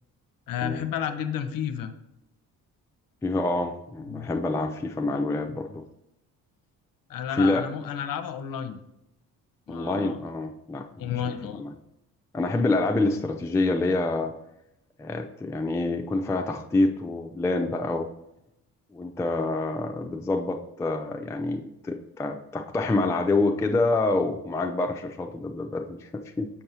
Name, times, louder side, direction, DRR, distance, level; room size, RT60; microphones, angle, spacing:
voice 1, 0.5-1.9 4.1-4.3 7.1-8.8 9.7-10.2 11.0-11.7, left 8 dB, 45° left, 9 dB, 0.7 m, -31 dB
voice 2, 3.2-5.8 7.3-7.6 9.7-11.7 12.3-14.3 15.0-18.1 18.9-26.5, left 2 dB, 5° left, 4 dB, 0.4 m, -27 dB
6.5 x 5.6 x 2.9 m, 0.86 s
hypercardioid pair, 45°, 46 cm